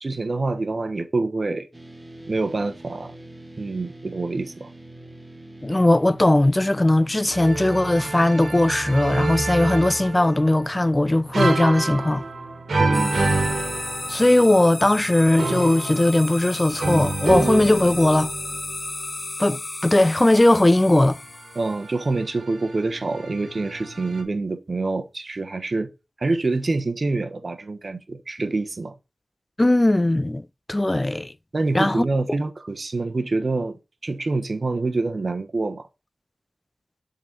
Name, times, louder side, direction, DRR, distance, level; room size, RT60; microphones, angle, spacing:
voice 1, 0.0-1.7 2.3-3.1 3.6-4.7 12.8-13.4 21.5-25.9 26.2-28.9 31.5-33.8 34.0-35.8, right 3 dB, 55° right, 1.0 m, -26 dB
sound 1, 1.7-17.0, right 2 dB, 15° right, 1.4 m, -44 dB
voice 2, 5.6-12.2 14.1-18.3 19.4-21.2 29.6-30.4 30.7-31.3 31.7-32.1, left 1 dB, 25° left, 0.3 m, -19 dB
sound 2, 7.3-10.5 11.3-14.5 15.4-18.8 20.8-24.2, right 2 dB, 80° right, 1.5 m, -27 dB
sound 3, 12.9-21.9, left 2 dB, 50° left, 1.0 m, -34 dB
7.2 x 4.0 x 3.9 m
cardioid pair, 45°, 0 cm